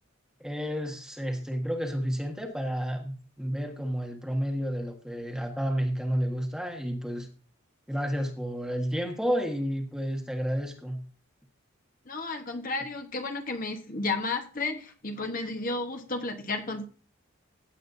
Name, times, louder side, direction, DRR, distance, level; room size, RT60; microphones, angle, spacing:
voice 1, 0.4-7.3 7.9-11.0, equal, 5° right, 2 dB, 1.5 m, -31 dB
voice 2, 12.1-16.9, left 3 dB, 40° left, 4 dB, 1.2 m, -32 dB
16.0 x 8.6 x 2.7 m, 0.39 s
head